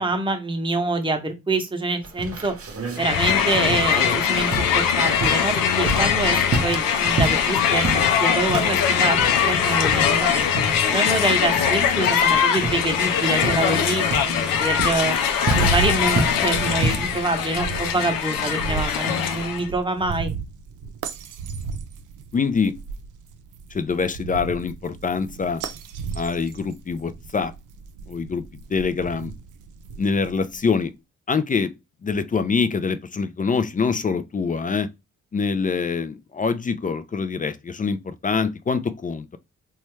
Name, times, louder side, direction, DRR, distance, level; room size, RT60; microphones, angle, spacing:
voice 1, 0.0-2.5 3.0-10.4 10.9-15.2 15.6-20.3, right 2 dB, 15° right, 0.9 m, -26 dB
sound 1, 2.0-17.2, right 2 dB, 45° right, 0.9 m, -30 dB
Crowd, 3.0-19.7, left 7 dB, 85° left, 0.5 m, -21 dB
sound 2, 15.4-30.6, right 4 dB, 65° right, 0.5 m, -33 dB
voice 2, 22.3-22.7 23.7-25.6 26.1-27.5 28.1-28.4 28.7-29.3 30.0-30.9 31.3-31.7 32.0-34.9 35.3-39.4, left 5 dB, 25° left, 0.4 m, -24 dB
3.0 x 2.3 x 3.1 m
supercardioid pair, 50°, 33 cm